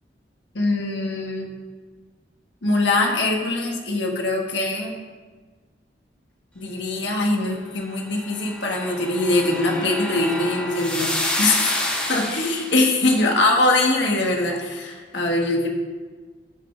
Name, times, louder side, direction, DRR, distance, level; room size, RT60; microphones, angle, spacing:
voice 1, 0.5-1.5 2.6-5.0 6.5-11.1 11.4-11.8 12.1-15.7, left 2 dB, 90° left, 0 dB, 1.6 m, -22 dB
sound 1, 8.2-12.9, left 1 dB, 5° left, 1.3 m, -28 dB
12.5 x 5.7 x 3.4 m, 1.4 s
head